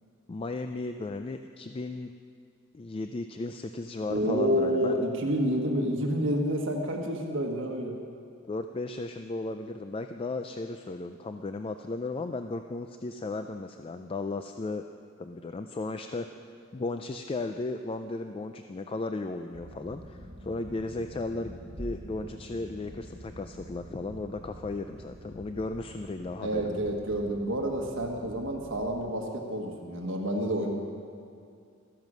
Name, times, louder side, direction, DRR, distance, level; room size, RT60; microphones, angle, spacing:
voice 1, 0.3-2.1 2.7-5.0 8.4-14.8 15.2-16.3 16.7-26.8, left 2 dB, 25° left, 7 dB, 0.3 m, -35 dB
voice 2, 4.1-8.0 26.4-30.7, equal, 65° right, 1 dB, 1.4 m, -29 dB
sound 1, 19.5-29.1, equal, 85° right, 1.5 m, -46 dB
14.0 x 10.5 x 6.2 m, 2.3 s
head